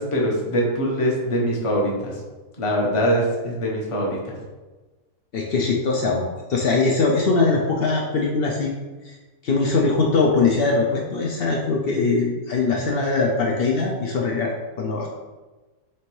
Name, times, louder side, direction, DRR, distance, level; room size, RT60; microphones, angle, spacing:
voice 1, 0.0-2.1 2.6-4.3, equal, 30° left, -3 dB, 0.6 m, -23 dB
voice 2, 5.3-8.7 9.0-9.2 9.4-15.1, left 3 dB, 80° left, -1 dB, 0.5 m, -21 dB
3.3 x 2.9 x 4.5 m, 1.2 s
omnidirectional pair, 1.6 m